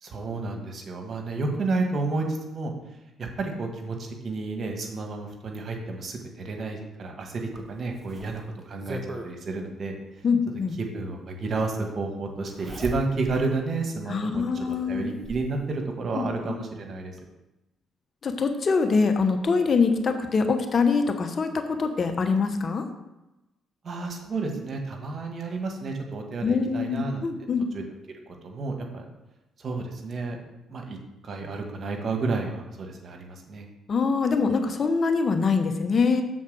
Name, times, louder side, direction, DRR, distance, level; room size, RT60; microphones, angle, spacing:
voice 1, 0.0-2.7 3.2-9.9 10.8-17.1 23.8-27.2 27.7-27.8 28.3-29.0 29.6-30.4 30.7-31.0 31.2-33.7, right 3 dB, 50° right, 2 dB, 1.5 m, -31 dB
Zipper (clothing), 7.5-9.3 10.7-10.8 12.5-13.4 13.9-14.0 14.7-15.5 16.7-16.8 17.2-17.3, right 1 dB, 30° right, 1.3 m, -38 dB
voice 2, 10.2-10.8 14.1-15.1 16.2-16.3 18.2-22.8 26.4-27.6 33.9-36.2, left 4 dB, 45° left, 6 dB, 1.0 m, -24 dB
7.1 x 4.1 x 6.3 m, 0.98 s
hypercardioid pair, 50°, 0 cm